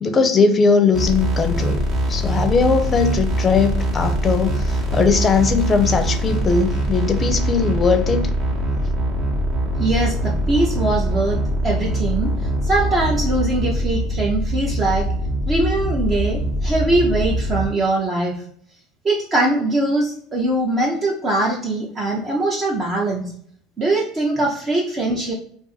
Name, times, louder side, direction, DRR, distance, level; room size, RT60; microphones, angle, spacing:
voice 1, 0.0-1.8 2.1-8.3, left 5 dB, 25° left, 7 dB, 0.6 m, -19 dB
sound 1, 0.9-17.7, right 1 dB, 50° right, 1.1 m, -22 dB
voice 2, 9.8-11.4 11.6-12.3 12.6-15.1 15.5-18.4 19.0-23.3 23.8-25.3, right 2 dB, 30° right, -2 dB, 0.6 m, -21 dB
2.5 x 2.5 x 3.9 m, 0.62 s
supercardioid pair, 110°, 0 cm